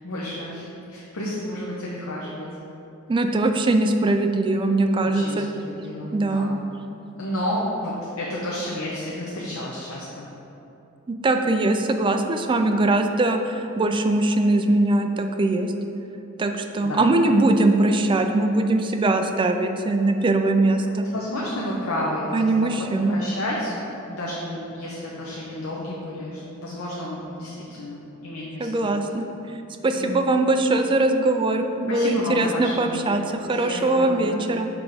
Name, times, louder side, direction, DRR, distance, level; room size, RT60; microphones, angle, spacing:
voice 1, 0.0-2.5 5.0-6.5 7.2-10.3 16.8-17.1 21.1-28.9 29.9-30.3 31.9-33.2 33.5-34.6, left 1 dB, 75° left, -4 dB, 0.7 m, -31 dB
voice 2, 3.1-5.5 6.1-6.5 11.2-15.7 16.4-21.1 22.3-23.2 28.6-29.2 29.8-34.7, right 2 dB, 25° right, 5 dB, 0.3 m, -21 dB
6.0 x 3.5 x 4.9 m, 2.9 s
head